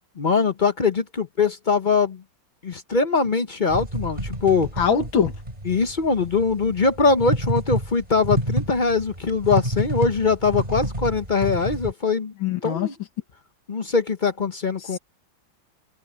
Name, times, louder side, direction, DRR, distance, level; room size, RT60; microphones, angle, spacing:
voice 1, 0.2-2.2 2.6-4.7 5.7-12.3 12.6-12.9 13.7-15.0, left 4 dB, 40° left, 0.7 m, -22 dB
sound 1, 3.7-11.9, right 1 dB, 20° right, 5.1 m, -29 dB
voice 2, 4.8-5.3 12.4-12.9 14.8-15.0, left 7 dB, 90° left, 2.5 m, -22 dB
omnidirectional pair, 2.1 m